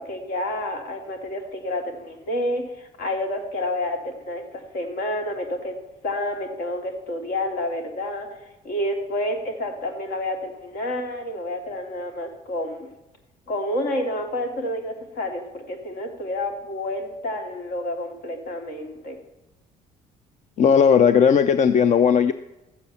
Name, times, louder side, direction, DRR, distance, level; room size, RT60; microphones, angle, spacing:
voice 1, 0.0-5.7 6.0-8.3 8.6-12.9 13.5-19.2, left 1 dB, 70° left, 4 dB, 3.1 m, -29 dB
voice 2, 20.6-22.3, left 7 dB, 45° left, 12 dB, 0.6 m, -16 dB
13.5 x 8.0 x 7.1 m, 0.95 s
cardioid pair, 110°, 17 cm